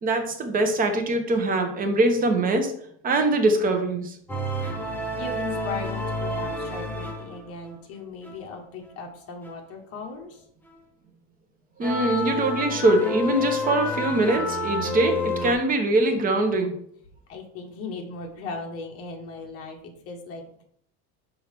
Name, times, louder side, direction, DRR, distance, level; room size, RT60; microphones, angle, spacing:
voice 1, 0.0-2.7 3.0-4.1 11.8-16.8, right 2 dB, 25° right, 5 dB, 1.0 m, -23 dB
sound 1, 4.3-7.7 8.2-8.3 9.4-9.5 11.8-15.5, left 1 dB, 5° left, 1.1 m, -29 dB
voice 2, 5.1-10.4 17.3-20.6, left 3 dB, 45° left, 2 dB, 1.4 m, -38 dB
6.0 x 5.4 x 3.5 m, 0.64 s
cardioid pair, 150°, 33 cm